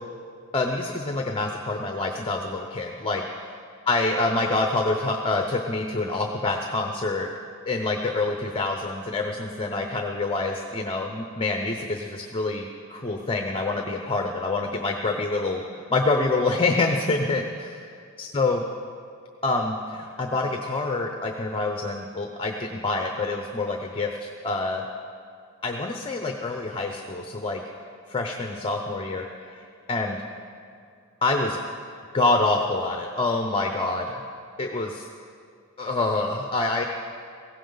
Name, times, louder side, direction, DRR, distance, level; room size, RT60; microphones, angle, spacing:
voice 1, 0.5-3.5 3.9-7.3 7.7-15.6 15.9-17.9 18.2-18.6 19.4-24.8 25.6-27.6 28.1-29.6 29.9-30.2 31.2-31.6 32.1-34.2 34.6-35.1 35.8-36.8, left 2 dB, 25° left, 3 dB, 0.7 m, -26 dB
17.0 x 16.0 x 3.9 m, 2.4 s
head